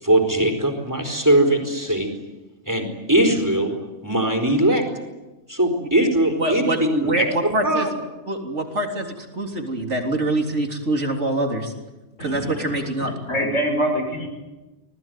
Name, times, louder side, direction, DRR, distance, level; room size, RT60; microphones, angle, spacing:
voice 1, 0.0-2.1 2.7-3.7 4.0-4.8 5.5-7.9, right 1 dB, 15° right, 5 dB, 4.5 m, -20 dB
voice 2, 6.4-7.9 8.3-11.7 12.2-13.1, right 1 dB, 70° right, 2 dB, 3.9 m, -24 dB
voice 3, 12.2-12.7 13.0-14.3, equal, 90° left, 3 dB, 6.7 m, -25 dB
26.5 x 20.0 x 9.4 m, 1.1 s
omnidirectional pair, 1.3 m